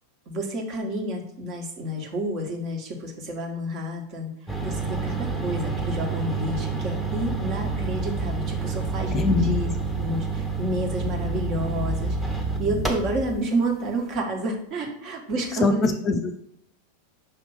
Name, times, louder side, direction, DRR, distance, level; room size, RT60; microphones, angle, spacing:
voice 1, 0.3-9.7 10.0-15.9, right 1 dB, 40° right, 1 dB, 1.3 m, -30 dB
sound 1, 4.5-13.4, right 3 dB, 5° right, 0.9 m, -28 dB
voice 2, 9.1-9.6 15.6-16.4, left 4 dB, 25° left, 7 dB, 0.5 m, -23 dB
5.8 x 2.9 x 5.5 m, 0.77 s
figure-of-eight pair, 90°, 0 cm